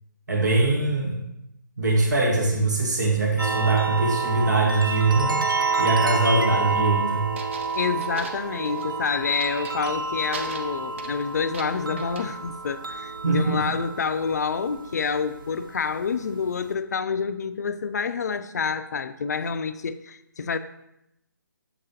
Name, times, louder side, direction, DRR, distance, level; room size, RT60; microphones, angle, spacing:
voice 1, 0.3-1.2 1.8-5.5 5.8-7.3 13.2-13.6, right 3 dB, 60° right, 1 dB, 1.1 m, -22 dB
sound 1, 3.4-16.7, right 4 dB, 85° right, 0.6 m, -29 dB
sound 2, 6.2-6.5 7.4-9.0 9.4-10.0 10.3-12.3, right 4 dB, 35° right, 0.5 m, -40 dB
voice 2, 7.8-20.6, left 5 dB, 55° left, 11 dB, 0.4 m, -28 dB
7.0 x 4.9 x 2.8 m, 0.86 s
figure-of-eight pair, 145°, 11 cm